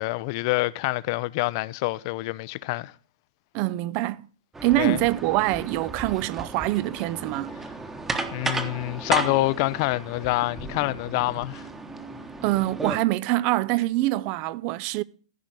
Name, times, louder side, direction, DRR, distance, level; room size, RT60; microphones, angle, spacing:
voice 1, 0.0-2.9 4.8-5.0 8.3-11.6, left 20 dB, 45° left, 0.5 m, -26 dB
voice 2, 3.5-4.2 4.6-7.5 12.4-15.0, right 17 dB, 35° right, 0.5 m, -24 dB
sound 1, 4.5-13.0, right 3 dB, 10° right, 1.1 m, -34 dB
14.5 x 5.2 x 6.2 m
hypercardioid pair, 130°, 3 cm